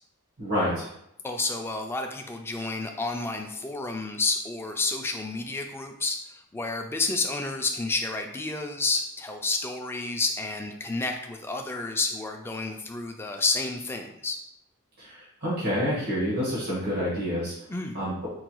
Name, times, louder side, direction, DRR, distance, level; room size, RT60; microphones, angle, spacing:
voice 1, 0.4-0.9 15.0-17.5 17.9-18.3, equal, 85° right, -8 dB, 1.4 m, -28 dB
voice 2, 1.2-14.4 17.7-18.0, left 3 dB, 10° left, 4 dB, 0.3 m, -30 dB
4.6 x 2.2 x 3.0 m, 0.77 s
head